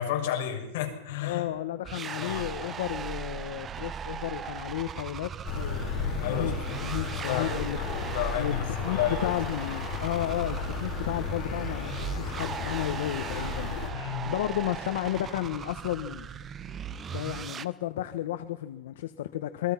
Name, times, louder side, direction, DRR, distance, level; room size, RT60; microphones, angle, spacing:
voice 1, 0.0-1.5 2.2-2.7 6.2-6.6 7.1-9.3 13.9-14.3, left 10 dB, 55° left, 1 dB, 6.7 m, -32 dB
voice 2, 1.2-7.8 8.3-16.3 17.1-19.7, left 13 dB, 75° left, 9 dB, 1.3 m, -33 dB
sound 1, 1.8-17.6, right 7 dB, 20° right, 0.8 m, -38 dB
sound 2, 5.4-13.9, left 6 dB, 35° left, 5.7 m, -34 dB
27.5 x 22.0 x 6.0 m, 0.93 s
supercardioid pair, 170°, 0 cm